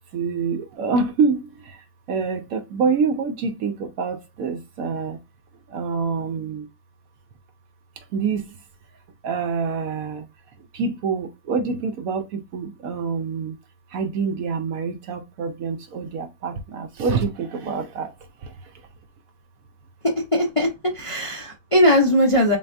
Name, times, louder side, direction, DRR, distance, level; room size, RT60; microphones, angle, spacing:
voice 1, 0.1-1.5 2.1-5.2 5.7-6.7 8.1-8.4 9.2-10.2 10.7-13.5 13.9-18.1, right 5 dB, 70° right, 1.0 m, -26 dB
voice 2, 20.3-20.7 20.9-22.6, left 1 dB, 35° left, 0.5 m, -19 dB
4.0 x 3.3 x 2.5 m
omnidirectional pair, 1.6 m